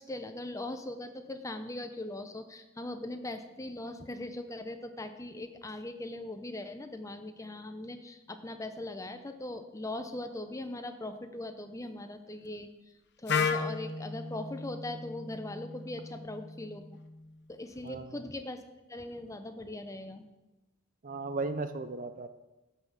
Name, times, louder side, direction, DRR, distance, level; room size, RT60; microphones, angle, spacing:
voice 1, 0.0-12.7 13.2-16.8 17.5-18.6 18.9-20.2, left 1 dB, 15° left, 8 dB, 0.6 m, -40 dB
Wind instrument woodwind instrument, 13.3-17.2, left 5 dB, 50° left, 0.8 m, -35 dB
voice 2, 17.8-18.1 21.0-22.3, right 3 dB, 35° right, 11 dB, 0.5 m, -36 dB
14.0 x 5.6 x 6.0 m, 1.1 s
head